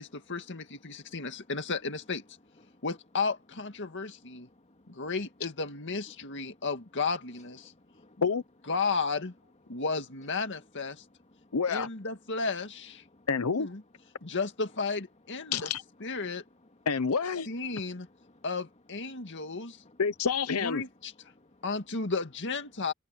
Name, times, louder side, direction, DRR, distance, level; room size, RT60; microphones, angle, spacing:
voice 1, 0.0-2.2 2.8-4.5 4.9-7.7 8.7-9.3 9.7-11.0 11.7-13.0 13.6-13.8 14.2-15.7 16.0-16.4 17.5-18.1 18.4-19.8 20.6-21.1 21.6-22.9, left 4 dB, 60° left, 2.1 m, -33 dB
voice 2, 4.5-5.0 7.6-8.2 9.7-9.8 11.3-11.6 13.1-13.3 14.2-14.3 16.2-16.3 17.7-17.9 18.2-18.4 19.1-19.5 19.8-20.0 21.3-21.6, left 1 dB, 30° left, 2.4 m, -61 dB
voice 3, 11.5-11.9 13.3-13.7 15.5-15.8 16.9-17.5 20.0-20.8, left 5 dB, 90° left, 0.8 m, -28 dB
head